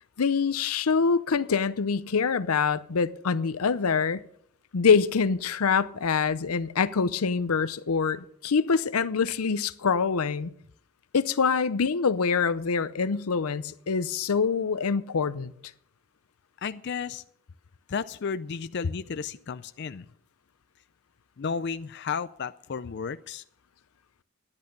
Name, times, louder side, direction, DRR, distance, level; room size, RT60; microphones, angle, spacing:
voice 1, 0.2-4.2 4.7-10.5 11.1-15.5, left 5 dB, 90° left, 0.6 m, -25 dB
voice 2, 16.6-17.2 17.9-20.1 21.4-23.4, left 6 dB, 50° left, 0.4 m, -33 dB
13.0 x 10.5 x 5.4 m
head